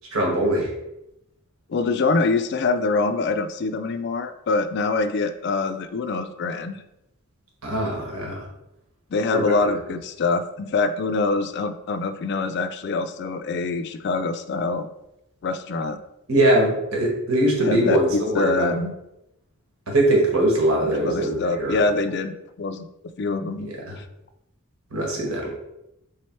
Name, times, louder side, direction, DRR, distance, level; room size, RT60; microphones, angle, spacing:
voice 1, 0.1-0.7 7.6-8.5 9.3-9.7 16.3-18.7 19.9-21.8 23.6-24.0 24.9-25.5, right 1 dB, 75° right, -1 dB, 1.3 m, -22 dB
voice 2, 1.7-6.8 9.1-14.9 15.4-16.0 17.6-18.9 20.8-22.9 23.2-23.7 24.0-24.1, left 3 dB, 50° left, 9 dB, 0.3 m, -25 dB
3.4 x 3.1 x 4.4 m, 0.85 s
head